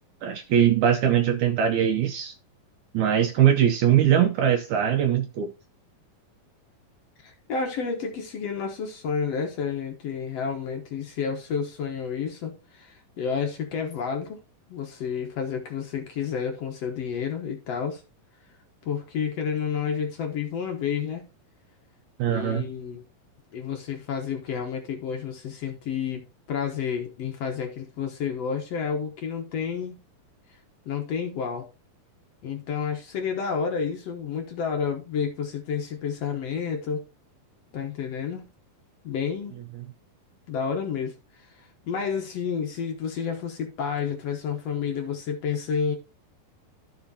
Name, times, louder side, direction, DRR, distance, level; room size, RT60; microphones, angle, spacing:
voice 1, 0.2-2.3 2.9-5.5 22.2-22.6, right 9 dB, 80° right, 1.8 m, -21 dB
voice 2, 7.2-14.4 14.7-18.0 18.8-21.2 22.3-23.0 23.5-30.0 30.8-31.7 32.4-37.0 37.7-38.5 39.0-39.6 40.5-45.9, left 6 dB, 65° left, 1.7 m, -30 dB
14.5 x 5.1 x 2.7 m
omnidirectional pair, 4.2 m